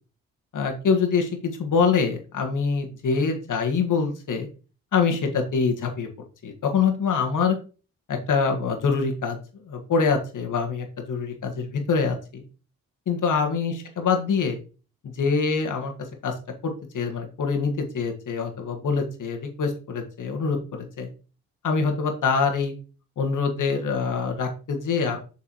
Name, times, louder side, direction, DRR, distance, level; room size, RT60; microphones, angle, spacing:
voice 1, 0.5-4.5 4.9-6.1 6.4-7.6 8.1-9.4 9.7-12.4 13.1-14.6 15.0-15.9 16.2-16.3 16.6-21.1 21.6-22.7 23.2-25.2, left 5 dB, 60° left, 4 dB, 1.7 m, -25 dB
7.4 x 4.7 x 3.0 m, 0.36 s
hypercardioid pair, 45°, 34 cm